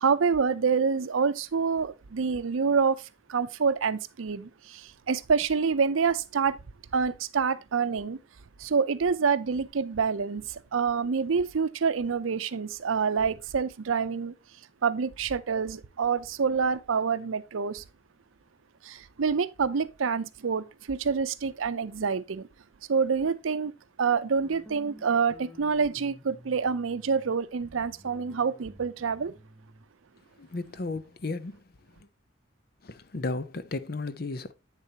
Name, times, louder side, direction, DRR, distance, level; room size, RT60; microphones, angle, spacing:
voice 1, 0.0-6.6 6.9-8.2 8.6-14.3 14.8-17.8 18.8-22.5 22.9-23.7 24.0-29.4, right 5 dB, 85° right, 0.6 m, -27 dB
sound 1, 24.4-27.3 27.6-29.8, equal, 5° left, 1.7 m, -52 dB
voice 2, 30.4-31.6 32.8-34.5, left 3 dB, 50° left, 0.6 m, -34 dB
8.2 x 6.8 x 2.8 m
head